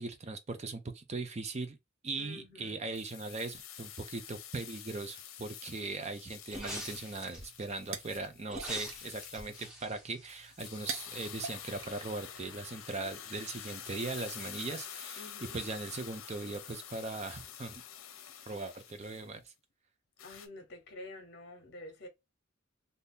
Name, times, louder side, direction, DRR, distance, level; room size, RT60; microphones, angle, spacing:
voice 1, 0.0-1.8 2.0-17.8 18.5-19.4, right 3 dB, 35° right, 0.5 m, -39 dB
voice 2, 2.1-2.8 13.0-13.4 15.2-15.6 20.2-22.1, left 2 dB, 55° left, 0.9 m, -49 dB
sound 1, 2.9-9.7 10.3-19.3 20.2-20.5, left 9 dB, 85° left, 0.6 m, -48 dB
sound 2, 6.5-7.6 8.5-10.9 11.3-11.4, equal, 5° right, 1.0 m, -44 dB
sound 3, 7.4-12.8, right 6 dB, 90° right, 0.6 m, -47 dB
2.7 x 2.7 x 3.5 m
head